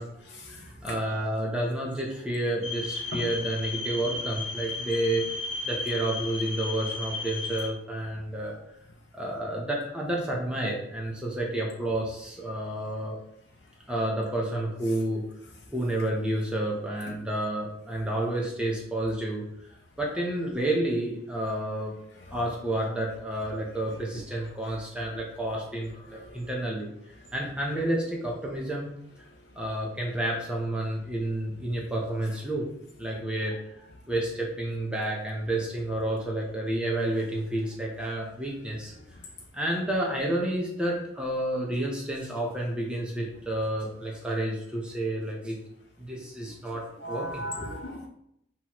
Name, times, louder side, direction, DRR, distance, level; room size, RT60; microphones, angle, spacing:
voice 1, 0.0-5.3 5.6-8.5 9.1-13.2 13.9-19.7 20.0-21.9 22.3-26.9 27.3-28.9 29.2-29.3 29.5-32.7 33.0-39.2 39.5-45.6 46.0-47.7, right 1 dB, 5° right, -2 dB, 0.7 m, -30 dB
sound 1, 2.6-7.7, left 3 dB, 80° left, 1.1 m, -34 dB
voice 2, 47.0-48.1, left 1 dB, 55° left, 0 dB, 0.6 m, -36 dB
5.9 x 3.0 x 2.9 m, 0.76 s
head